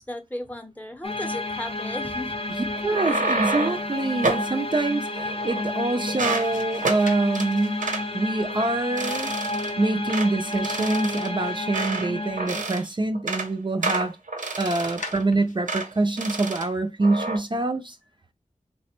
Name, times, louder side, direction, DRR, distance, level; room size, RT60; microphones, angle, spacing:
voice 1, 0.0-2.4 3.1-3.3 3.7-3.8, left 1 dB, 10° left, 0.7 m, -35 dB
sound 1, 1.0-12.6, left 2 dB, 45° left, 0.6 m, -31 dB
voice 2, 2.5-7.8 8.1-9.3 9.8-14.2 14.6-18.0, right 2 dB, 35° right, 0.4 m, -25 dB
sound 2, 2.7-3.9 4.2-4.5 5.1-5.8 6.1-6.5 6.8-7.0 7.3-7.5 7.8-8.0 8.5-8.7 9.0-9.7 10.1-10.3 10.6-12.1 12.4-12.9 13.1-13.5 13.8-15.2 15.7-15.9 16.2-16.7 17.0-17.4, right 3 dB, 90° right, 0.8 m, -29 dB
sound 3, 6.1-12.3 14.5-15.7, left 3 dB, 85° left, 0.6 m, -45 dB
3.2 x 2.1 x 4.3 m
wide cardioid pair, 70°, 13 cm